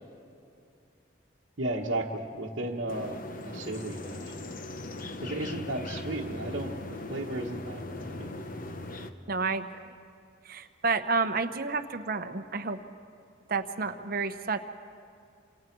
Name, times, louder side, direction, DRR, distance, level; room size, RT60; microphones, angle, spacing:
voice 1, 1.6-3.2 3.4-4.3 5.2-6.7 7.1-8.3, right 2 dB, 70° right, -4 dB, 1.4 m, -34 dB
sound 1, 2.9-9.1, left 2 dB, 45° left, 1.0 m, -39 dB
voice 2, 9.3-9.7 10.5-12.8 13.5-14.6, right 4 dB, 50° right, 8 dB, 1.0 m, -30 dB
29.0 x 27.0 x 4.7 m, 2.4 s
head